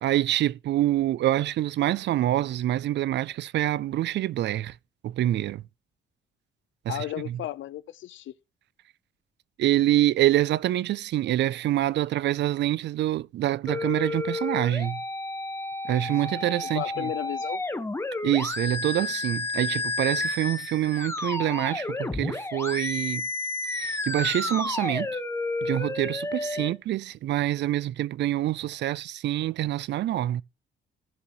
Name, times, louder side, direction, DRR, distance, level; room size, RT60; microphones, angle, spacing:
voice 1, 0.0-4.8 5.0-5.6 6.9-7.0 7.3-7.4 9.6-15.0 15.8-17.1 18.2-23.2 23.7-25.1 25.6-30.4, right 13 dB, 65° right, 0.4 m, -26 dB
voice 2, 6.9-8.3 16.7-17.6 26.6-26.7, left 14 dB, 75° left, 0.7 m, -34 dB
sound 1, 13.7-26.7, left 2 dB, 15° left, 1.3 m, -31 dB
15.5 x 6.8 x 3.0 m
cardioid pair, 90°, 20 cm